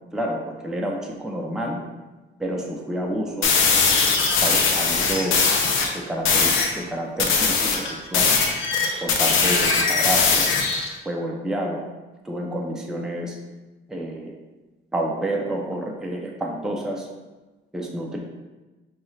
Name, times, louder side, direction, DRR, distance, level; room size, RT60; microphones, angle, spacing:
voice 1, 0.1-1.8 2.4-3.5 4.4-5.5 5.9-8.3 9.0-10.5 11.0-11.8 12.2-13.4 13.9-14.3 14.9-17.1 17.7-18.2, right 1 dB, 5° right, -1 dB, 0.5 m, -29 dB
sound 1, 3.4-5.9 6.2-6.7 7.2-10.9, left 4 dB, 85° left, 0.6 m, -20 dB
5.2 x 2.4 x 3.2 m, 1.2 s
cardioid pair, 90°, 20 cm